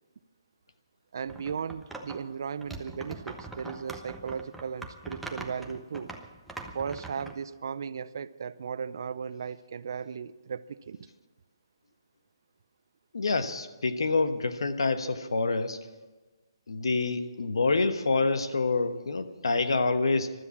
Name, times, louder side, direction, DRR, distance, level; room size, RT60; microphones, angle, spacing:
voice 1, 1.1-6.1 6.7-11.0, right 6 dB, 50° right, 0.5 m, -36 dB
sound 1, 1.3-2.2 2.6-7.4, right 2 dB, ahead, 0.7 m, -42 dB
voice 2, 13.1-15.8 16.7-20.3, left 3 dB, 90° left, 1.2 m, -27 dB
15.5 x 12.5 x 7.2 m
hypercardioid pair, 170°, 2 cm